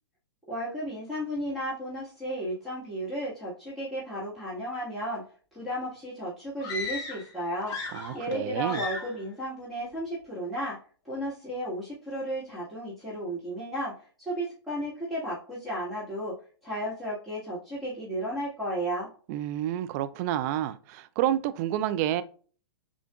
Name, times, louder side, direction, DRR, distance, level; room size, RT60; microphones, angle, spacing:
voice 1, 0.5-5.2 5.5-7.8 8.1-10.8 11.0-16.3 16.6-19.1, equal, ahead, 1.6 m, -34 dB
sound 1, 6.6-7.3 7.6-8.4 8.7-9.2, left 3 dB, 25° left, 1.1 m, -36 dB
voice 2, 7.9-8.8 19.3-22.2, right 12 dB, 40° right, 0.4 m, -29 dB
6.8 x 2.5 x 2.3 m
hypercardioid pair, 115°, 14 cm